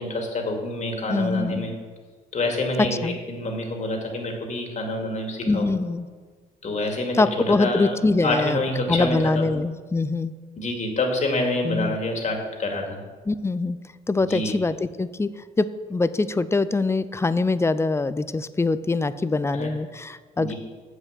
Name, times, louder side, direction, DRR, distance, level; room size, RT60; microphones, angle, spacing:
voice 1, 0.0-1.7 2.3-5.7 6.6-9.5 10.6-13.0 14.2-14.5 19.5-19.7 20.4-20.5, left 2 dB, 40° left, 2 dB, 2.4 m, -27 dB
voice 2, 1.1-1.7 2.8-3.2 5.4-6.1 7.2-8.6 8.9-10.3 11.6-12.0 13.3-13.8 14.1-15.3 15.6-20.5, left 3 dB, 15° left, 15 dB, 0.5 m, -23 dB
7.3 x 6.4 x 7.4 m, 1.5 s
supercardioid pair, 65°, 18 cm